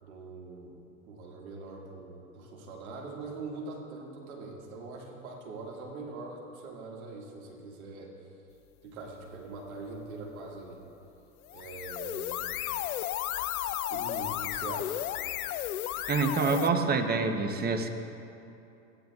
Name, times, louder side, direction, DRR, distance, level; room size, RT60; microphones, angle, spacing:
voice 1, 0.0-8.1 8.8-10.8 11.5-12.6 13.9-15.1, right 3 dB, 70° right, -1 dB, 2.0 m, -43 dB
sound 1, 11.4-16.7, left 13 dB, 75° left, 0.5 m, -33 dB
voice 2, 16.1-17.9, right 4 dB, 20° right, 6 dB, 0.8 m, -27 dB
15.0 x 9.4 x 2.3 m, 2.8 s
hypercardioid pair, 95°, 43 cm